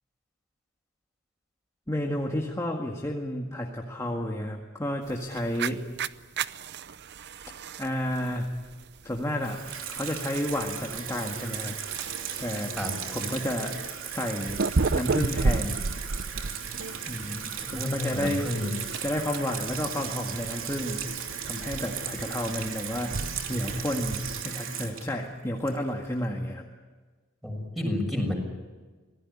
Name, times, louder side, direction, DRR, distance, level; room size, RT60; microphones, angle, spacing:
voice 1, 1.9-5.8 7.8-8.6 9.0-9.6 9.9-11.7 12.4-12.7 13.1-13.8 14.1-15.8 17.1-18.5 19.0-21.0 21.4-23.2 23.5-26.6, left 1 dB, 15° left, 1 dB, 1.9 m, -31 dB
sound 1, 5.1-24.4, right 4 dB, 55° right, 0.7 m, -34 dB
Water tap faucet / Sink (filling or washing), 9.4-26.1, right 8 dB, 90° right, 2.9 m, -36 dB
voice 2, 17.7-18.7 27.4-28.4, left 1 dB, ahead, 1 dB, 6.8 m, -30 dB
26.0 x 18.5 x 9.9 m, 1.4 s
head